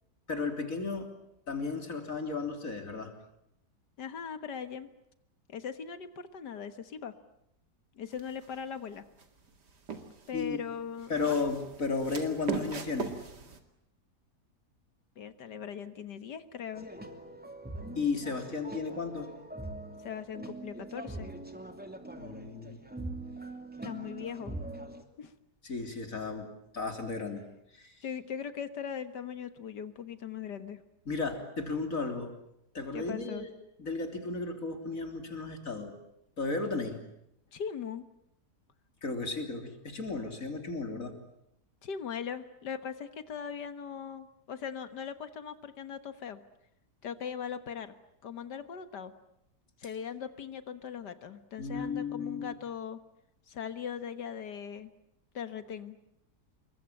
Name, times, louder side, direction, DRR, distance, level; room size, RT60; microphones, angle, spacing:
voice 1, 0.3-1.1 1.5-3.1 10.3-10.6 11.1-13.1 18.0-19.3 22.2-22.8 25.6-27.5 27.7-28.0 31.1-32.3 32.7-33.5 33.8-36.0 36.4-37.0 39.0-41.2 51.6-52.5, left 4 dB, 50° left, 5 dB, 3.8 m, -34 dB
voice 2, 4.0-4.9 5.5-7.1 7.9-9.1 10.3-11.4 15.2-16.9 20.0-21.3 23.8-24.6 25.2-25.3 28.0-30.8 32.9-33.5 37.5-38.1 41.8-46.4 47.0-47.9 48.2-49.1 49.8-53.0 53.5-54.9 55.3-56.0, left 7 dB, 80° left, 11 dB, 2.0 m, -39 dB
sound 1, 8.1-8.6 9.2-10.4 11.0-13.6, right 5 dB, 75° right, 3.0 m, -39 dB
sound 2, 16.7-25.0, right 2 dB, 5° right, 2.5 m, -43 dB
27.5 x 23.0 x 8.9 m, 0.79 s
omnidirectional pair, 1.8 m